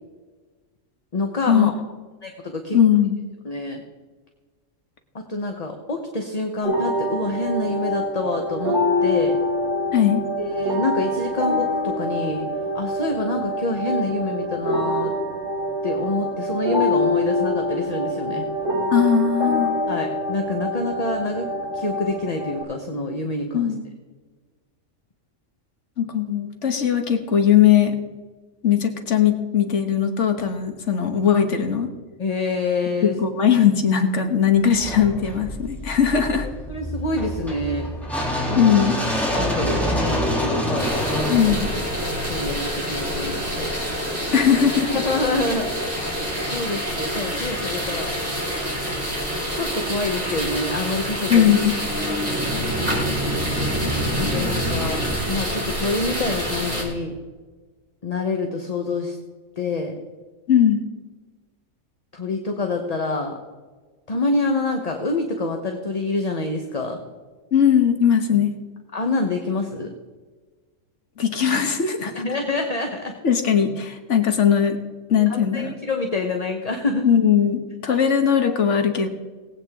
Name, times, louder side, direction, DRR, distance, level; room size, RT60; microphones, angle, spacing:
voice 1, 1.1-1.7 2.2-2.8 3.4-3.8 5.1-9.4 10.4-12.5 12.7-15.1 15.8-18.5 19.9-23.7 32.2-33.2 36.7-37.9 38.5-38.6 39.3-41.3 42.0-43.7 44.9-45.7 46.0-48.2 49.5-51.5 52.0-52.2 54.2-57.2 58.0-59.2 59.6-59.9 62.1-63.4 64.1-67.1 68.9-69.9 71.5-71.6 72.0-73.2 75.2-77.1 77.9-78.0 78.4-78.6 78.9-79.1, left 2 dB, 30° left, 3 dB, 1.0 m, -27 dB
voice 2, 2.7-3.2 9.9-10.2 18.9-19.7 23.5-23.8 26.0-28.0 28.6-31.9 33.0-36.5 38.5-39.0 41.3-41.7 44.3-44.9 51.3-51.7 60.5-60.8 67.5-68.5 71.2-72.2 73.2-74.8 75.1-75.7 77.0-79.1, left 8 dB, 65° left, 6 dB, 1.5 m, -19 dB
sound 1, 6.6-22.6, left 1 dB, 75° right, 4.4 m, -25 dB
sound 2, 34.7-42.7, equal, ahead, 2.9 m, -27 dB
sound 3, 40.8-56.8, equal, 30° right, 3.4 m, -26 dB
20.0 x 8.6 x 3.6 m, 1.4 s
omnidirectional pair, 1.3 m